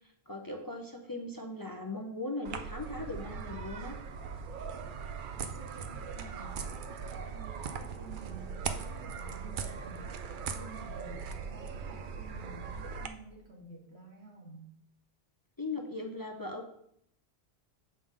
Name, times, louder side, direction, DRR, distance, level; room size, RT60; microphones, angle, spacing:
voice 1, 0.3-4.0 15.6-16.7, left 2 dB, 30° left, 3 dB, 0.5 m, -39 dB
sound 1, 2.4-13.1, right 6 dB, 60° right, 0.6 m, -40 dB
voice 2, 5.3-14.7, right 2 dB, 80° right, -2 dB, 1.9 m, -51 dB
6.5 x 5.3 x 3.6 m, 0.74 s
omnidirectional pair, 1.1 m